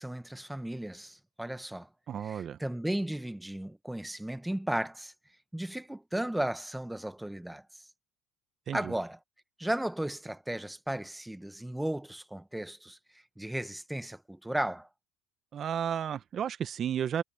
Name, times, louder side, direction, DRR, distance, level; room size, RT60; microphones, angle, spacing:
voice 1, 0.0-1.9 2.2-5.1 5.5-7.8 8.7-9.2 9.6-14.9, right 1 dB, 5° right, 1.2 m, -35 dB
voice 2, 2.1-2.6 8.7-8.9 15.5-17.2, right 9 dB, 40° right, 1.0 m, -33 dB
supercardioid pair, 100°, 0 cm